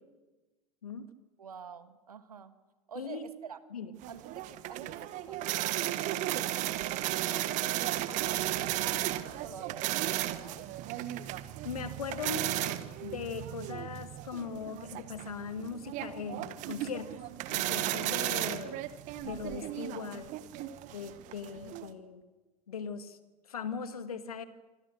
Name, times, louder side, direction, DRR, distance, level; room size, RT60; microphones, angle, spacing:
voice 1, 1.4-2.5 2.9-3.6 4.1-10.7 18.9-19.0, right 6 dB, 75° right, 12 dB, 1.6 m, -48 dB
sound 1, 4.0-21.9, right 14 dB, 40° right, 1.4 m, -35 dB
voice 2, 11.6-17.2 17.5-18.9 19.2-20.3 20.9-22.2 22.7-23.2 23.5-24.5, left 5 dB, 70° left, 10 dB, 1.9 m, -39 dB
25.5 x 25.5 x 6.4 m, 1.2 s
figure-of-eight pair, 85°, 20 cm